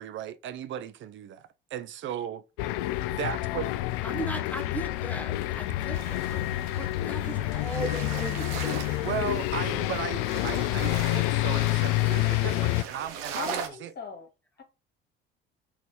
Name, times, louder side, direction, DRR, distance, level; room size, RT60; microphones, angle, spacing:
voice 1, 0.0-1.4 1.7-2.4 3.1-3.7 9.0-13.9, right 10 dB, 45° right, 0.5 m, -36 dB
sound 1, 2.6-12.8, left 17 dB, 65° left, 0.4 m, -28 dB
voice 2, 4.0-6.4 6.8-8.9 9.7-9.8, right 1 dB, 5° left, 1.1 m, -38 dB
sound 2, 5.9-13.7, right 7 dB, 65° right, 0.9 m, -40 dB
voice 3, 13.3-14.3 14.6-14.7, left 5 dB, 35° left, 1.8 m, -38 dB
4.0 x 2.9 x 3.3 m
hypercardioid pair, 60°, 29 cm